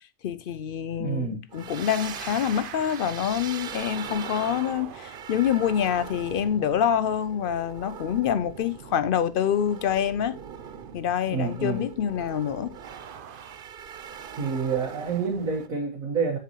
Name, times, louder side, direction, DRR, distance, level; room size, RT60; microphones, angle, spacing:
voice 1, 0.2-10.4 10.9-12.8, left 9 dB, 70° left, 0.5 m, -26 dB
voice 2, 1.0-1.4 11.3-11.9 14.4-16.4, right 5 dB, 80° right, 1.9 m, -28 dB
sound 1, 1.5-15.7, right 7 dB, 55° right, 0.6 m, -41 dB
7.7 x 6.8 x 3.0 m
omnidirectional pair, 1.4 m